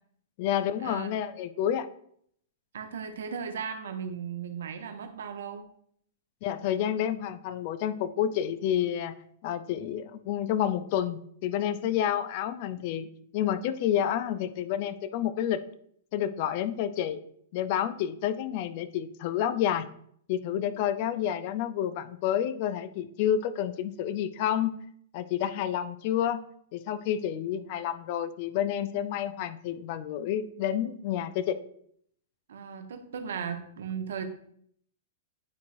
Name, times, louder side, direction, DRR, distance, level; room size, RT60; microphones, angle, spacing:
voice 1, 0.4-1.9 6.4-9.2 9.4-13.1 13.3-15.6 16.1-17.2 17.5-19.9 20.3-24.8 25.1-26.4 26.7-31.6, left 10 dB, 40° left, 12 dB, 0.4 m, -29 dB
voice 2, 2.7-5.6 12.8-12.9 32.5-34.2, right 7 dB, 60° right, 7 dB, 0.8 m, -36 dB
9.4 x 4.4 x 2.5 m, 0.66 s
figure-of-eight pair, 105°, 0 cm